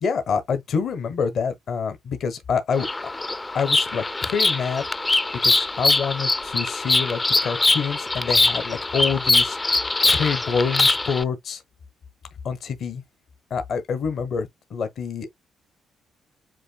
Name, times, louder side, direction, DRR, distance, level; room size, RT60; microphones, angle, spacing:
voice 1, 0.0-3.1 3.5-4.8 5.4-9.8 10.1-11.6 12.4-13.0 13.5-15.3, left 6 dB, 60° left, 1.0 m, -27 dB
Bird vocalization bird call bird song, 2.7-11.2, left 2 dB, 20° left, 0.4 m, -22 dB
7.6 x 2.7 x 2.3 m
cardioid pair, 90°, 0 cm